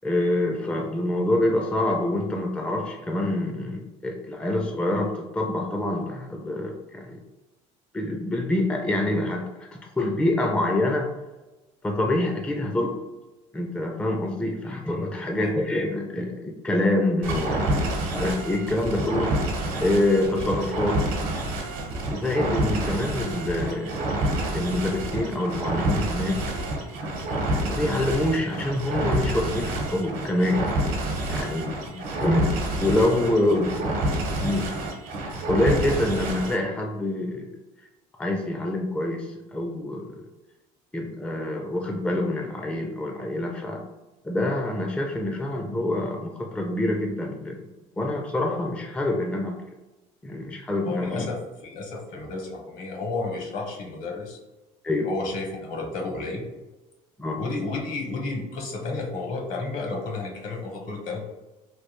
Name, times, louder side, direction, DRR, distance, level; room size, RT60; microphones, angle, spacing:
voice 1, 0.0-7.2 7.9-11.1 11.8-13.0 13.5-17.7 18.0-19.4 19.8-21.0 22.1-24.0 24.5-26.4 27.0-27.3 27.6-30.7 31.3-31.7 32.2-32.5 32.8-33.9 34.4-34.7 35.5-37.5 38.2-40.2 40.9-43.8 44.2-47.6 48.0-49.6 50.2-51.3 54.8-55.1 57.2-57.4, left 1 dB, 10° left, 2 dB, 0.4 m, -26 dB
sound 1, 17.2-36.6, right 1 dB, 75° right, 0.9 m, -28 dB
voice 2, 50.8-54.4 55.0-56.5 57.4-61.2, left 3 dB, 60° left, 1 dB, 1.0 m, -32 dB
3.2 x 2.3 x 3.0 m, 1.1 s
cardioid pair, 100°, 15 cm